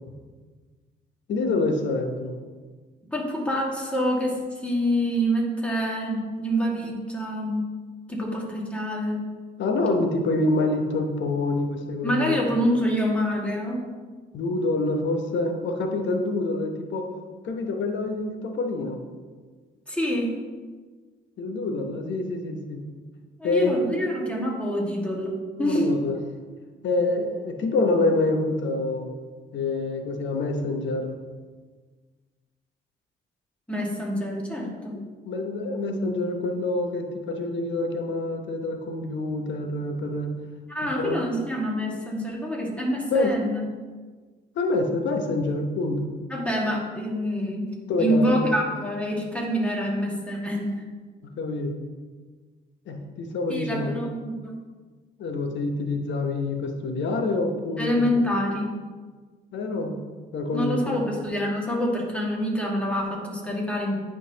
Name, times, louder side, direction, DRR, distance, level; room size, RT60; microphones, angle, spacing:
voice 1, 1.3-2.4 9.6-12.5 14.3-17.1 17.4-19.0 21.4-22.8 23.4-23.9 25.6-26.1 26.8-29.1 29.5-31.1 35.3-40.3 41.0-41.3 43.1-43.4 44.6-46.1 47.9-48.5 51.4-51.7 52.9-54.0 55.2-58.2 59.5-60.0 60.3-61.0, left 2 dB, 65° left, 4 dB, 0.9 m, -26 dB
voice 2, 3.1-7.7 8.1-9.2 12.0-13.8 19.9-20.4 23.4-26.0 33.7-35.0 40.7-43.6 46.3-47.7 48.0-50.8 53.5-54.6 57.8-58.7 60.5-63.9, equal, 5° left, -2 dB, 1.8 m, -26 dB
9.8 x 3.8 x 2.9 m, 1.4 s
supercardioid pair, 65°, 20 cm